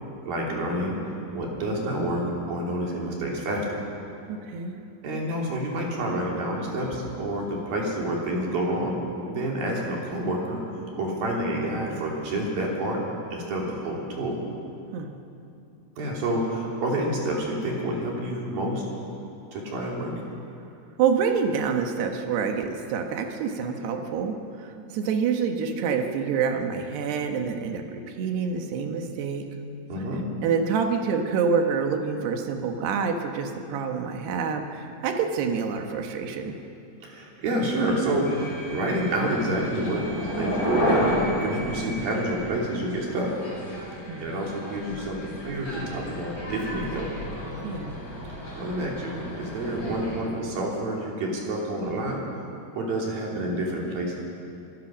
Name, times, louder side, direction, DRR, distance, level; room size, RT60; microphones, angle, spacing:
voice 1, 0.3-1.0 1.3-3.6 5.0-9.0 9.3-10.6 10.9-13.0 13.3-14.4 16.0-18.8 19.5-20.1 29.9-30.2 37.0-40.1 40.4-41.1 41.4-43.4 44.2-47.1 48.6-52.2 52.7-54.2, right 1 dB, 50° right, -2 dB, 4.3 m, -28 dB
voice 2, 4.3-4.8 14.9-15.1 21.0-29.5 30.4-36.6 44.1-44.4 47.6-48.0, right 6 dB, 65° right, 4 dB, 2.9 m, -27 dB
sound 1, 38.2-50.2, equal, 25° left, 6.3 m, -32 dB
25.0 x 17.5 x 6.3 m, 2.6 s
omnidirectional pair, 6.0 m